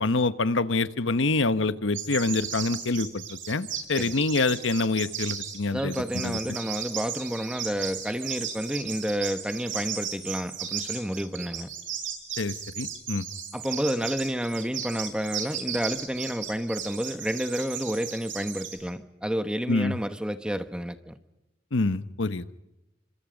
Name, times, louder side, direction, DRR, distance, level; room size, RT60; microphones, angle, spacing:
voice 1, 0.0-6.6 12.4-13.3 19.7-20.0 21.7-22.4, left 3 dB, 85° left, 1.1 m, -26 dB
sound 1, 1.9-18.7, right 9 dB, 80° right, 7.2 m, -35 dB
voice 2, 5.7-11.7 13.5-21.1, equal, 5° right, 1.1 m, -30 dB
28.0 x 26.0 x 5.2 m
head